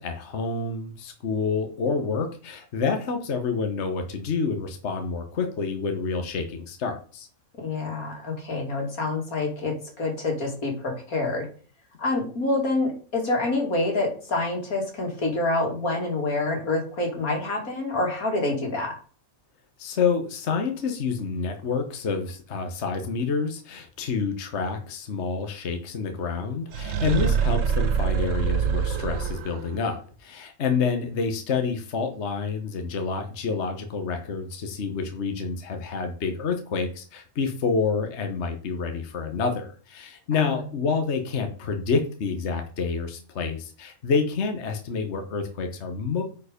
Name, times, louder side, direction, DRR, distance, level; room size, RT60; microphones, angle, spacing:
voice 1, 0.0-7.3 19.8-46.2, left 5 dB, 55° left, 5 dB, 1.4 m, -28 dB
voice 2, 7.6-11.5 12.0-18.9 40.3-40.6, left 2 dB, 90° left, 1 dB, 3.1 m, -27 dB
sound 1, 26.7-29.7, right 6 dB, 65° right, 1.2 m, -25 dB
9.3 x 4.8 x 5.1 m, 0.41 s
omnidirectional pair, 1.5 m